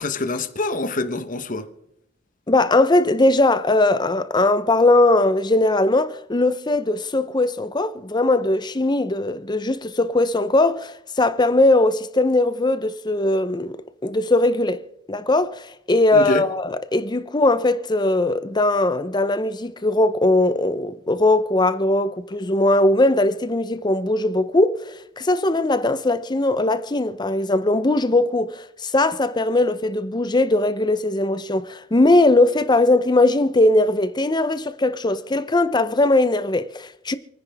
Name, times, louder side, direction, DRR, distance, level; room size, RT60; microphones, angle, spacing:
voice 1, 0.0-1.7 16.1-16.5, left 2 dB, 45° left, 1.1 m, -25 dB
voice 2, 2.5-14.8 15.1-37.2, left 2 dB, 25° left, 0.7 m, -20 dB
28.0 x 10.0 x 3.5 m
head